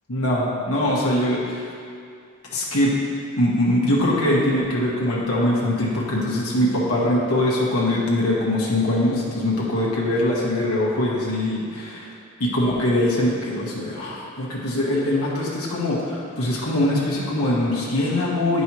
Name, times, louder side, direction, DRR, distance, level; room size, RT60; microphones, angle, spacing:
voice 1, 0.1-1.6 2.5-3.0 3.4-12.1 12.4-18.6, left 1 dB, 85° left, -6 dB, 1.4 m, -22 dB
9.6 x 5.4 x 3.0 m, 2.4 s
head